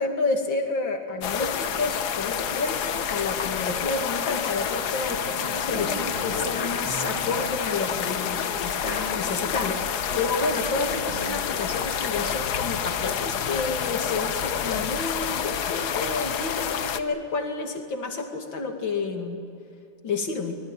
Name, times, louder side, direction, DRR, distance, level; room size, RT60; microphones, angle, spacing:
voice 1, 0.0-19.4 20.0-20.6, left 3 dB, 85° left, 3 dB, 3.3 m, -30 dB
sound 1, 1.2-17.0, left 8 dB, 65° left, 1.5 m, -28 dB
sound 2, 5.1-9.8 10.1-11.3, right 2 dB, 65° right, 4.1 m, -39 dB
25.0 x 20.0 x 9.0 m, 2.7 s
omnidirectional pair, 2.0 m